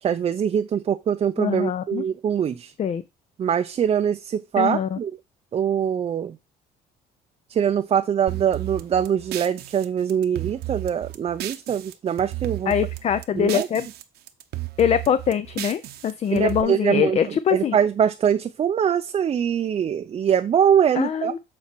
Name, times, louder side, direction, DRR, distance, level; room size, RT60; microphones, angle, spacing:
voice 1, 0.0-2.7 3.4-5.1 5.5-6.4 7.5-12.7 13.3-13.7 16.3-21.4, right 8 dB, 35° right, 0.5 m, -23 dB
voice 2, 1.4-2.0 2.8-3.0 4.6-5.0 12.7-13.9 14.8-17.8 21.0-21.4, left 9 dB, 40° left, 0.5 m, -23 dB
sound 1, 8.3-11.9 12.2-14.0 14.3-16.6, right 16 dB, 75° right, 0.9 m, -33 dB
7.6 x 4.2 x 4.5 m
cardioid pair, 110°, 17 cm